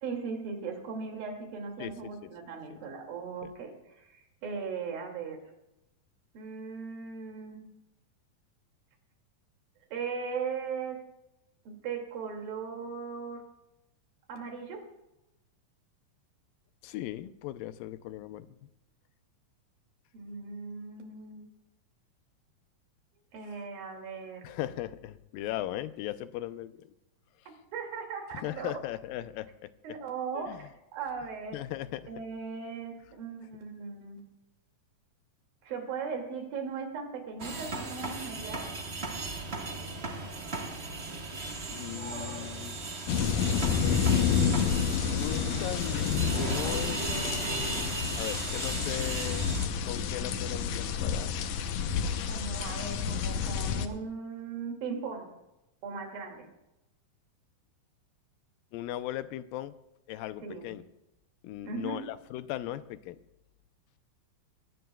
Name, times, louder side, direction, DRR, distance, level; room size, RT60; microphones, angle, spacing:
voice 1, 0.0-5.4 6.3-7.6 9.9-11.0 11.7-13.4 14.3-14.9 20.1-21.5 23.3-24.5 27.5-28.7 29.8-31.6 32.1-34.2 35.6-38.7 52.2-55.3 55.8-56.5 60.4-60.7 61.6-62.0, right 5 dB, 85° right, 2 dB, 4.3 m, -38 dB
voice 2, 1.8-2.1 2.7-2.8 3.4-3.5 16.8-18.6 24.4-26.9 28.4-29.7 30.3-30.6 31.5-32.1 41.7-42.8 43.8-44.3 45.1-47.0 48.2-49.5 49.8-52.3 58.7-59.7 60.1-60.8 61.4-63.2, left 14 dB, 90° left, 12 dB, 2.4 m, -38 dB
sound 1, 37.4-49.7, right 3 dB, 65° right, 0.6 m, -36 dB
sound 2, 43.1-53.9, left 7 dB, 70° left, 1.7 m, -29 dB
22.0 x 17.0 x 2.3 m, 0.91 s
omnidirectional pair, 4.0 m